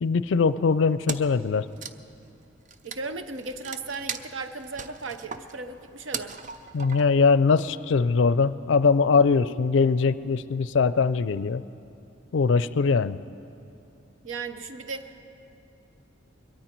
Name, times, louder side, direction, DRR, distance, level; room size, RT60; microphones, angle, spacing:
voice 1, 0.0-1.6 6.7-11.6 12.3-13.2, left 4 dB, 70° left, 16 dB, 0.4 m, -21 dB
Wood, 1.1-1.4 1.7-7.3, right 6 dB, 40° right, 0.5 m, -38 dB
voice 2, 2.8-6.4 14.2-15.2, right 3 dB, 80° right, 9 dB, 0.8 m, -36 dB
22.0 x 13.0 x 4.5 m, 2.7 s
head